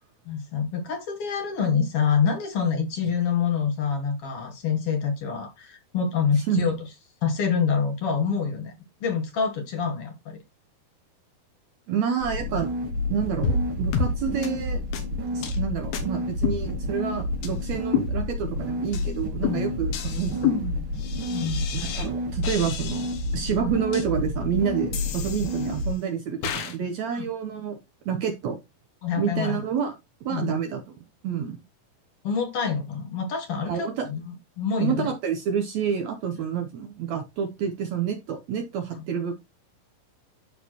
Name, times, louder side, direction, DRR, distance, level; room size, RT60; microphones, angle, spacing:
voice 1, 0.3-6.8 7.2-8.7 9.0-10.4 21.3-21.7 27.1-27.2 29.0-29.6 30.3-30.6 32.2-35.1 38.9-39.0, left 6 dB, 60° left, 4 dB, 1.5 m, -26 dB
voice 2, 6.3-6.7 11.9-12.7 13.1-14.8 15.3-20.6 21.7-27.8 28.0-28.6 29.2-29.9 30.2-31.0 31.2-31.6 33.6-34.1 34.8-39.3, right 7 dB, 80° right, 6 dB, 1.6 m, -28 dB
sound 1, 12.2-25.9, left 1 dB, 50° right, 1.7 m, -30 dB
sound 2, 13.4-13.7 13.9-14.1 14.4-14.5 14.9-15.0 15.4-15.6 15.9-16.0 16.4-17.1 17.4-17.5 17.9-18.6 18.9-19.1 19.4-22.1 22.4-23.3 23.9-24.0 24.9-25.9 26.4-26.8, left 6 dB, 85° left, 3.4 m, -30 dB
12.5 x 4.4 x 3.0 m, 0.23 s
omnidirectional pair, 4.3 m